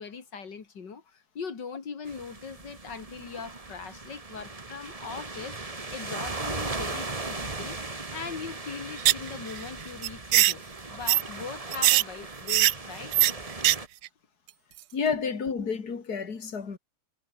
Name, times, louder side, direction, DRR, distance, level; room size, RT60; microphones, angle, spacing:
voice 1, 0.0-5.6 5.9-7.8 8.1-10.6 10.9-13.1, left 5 dB, 85° left, 3.0 m, -40 dB
sound 1, 2.1-13.9, right 3 dB, 20° right, 1.8 m, -38 dB
sound 2, 9.0-9.3 9.6-9.7 10.0-10.5 11.1-11.2 11.7-12.0 12.5-12.7 13.1-13.3 13.6-13.8 14.0-14.1, right 15 dB, 75° right, 1.1 m, -20 dB
voice 2, 14.9-16.8, left 5 dB, 65° left, 3.0 m, -30 dB
omnidirectional pair, 1.8 m